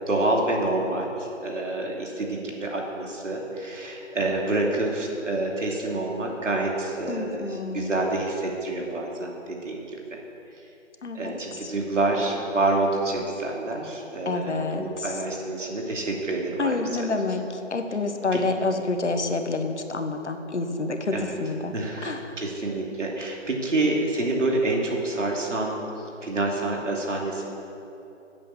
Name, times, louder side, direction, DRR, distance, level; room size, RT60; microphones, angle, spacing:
voice 1, 0.1-9.8 10.1-10.2 11.1-16.9 18.3-18.4 21.1-21.4 21.7-25.8 26.2-27.5, right 2 dB, 70° right, -1 dB, 2.7 m, -27 dB
voice 2, 7.1-8.0 11.0-11.7 14.2-15.2 16.6-21.7 22.0-22.4, left 3 dB, 60° left, 6 dB, 1.3 m, -28 dB
11.0 x 8.7 x 7.1 m, 3.0 s
figure-of-eight pair, 170°, 39 cm